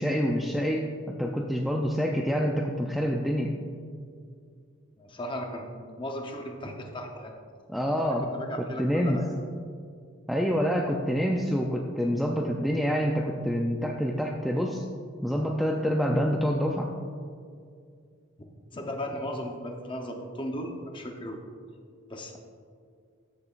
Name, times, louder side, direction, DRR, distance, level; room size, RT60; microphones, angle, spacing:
voice 1, 0.0-3.5 7.7-8.3 8.8-9.2 10.3-14.8 15.2-16.9, equal, ahead, 0 dB, 0.3 m, -27 dB
voice 2, 5.0-7.4 8.0-9.2 18.7-21.4 22.1-22.4, equal, 25° left, 2 dB, 0.7 m, -36 dB
13.5 x 6.7 x 2.4 m, 2.3 s
head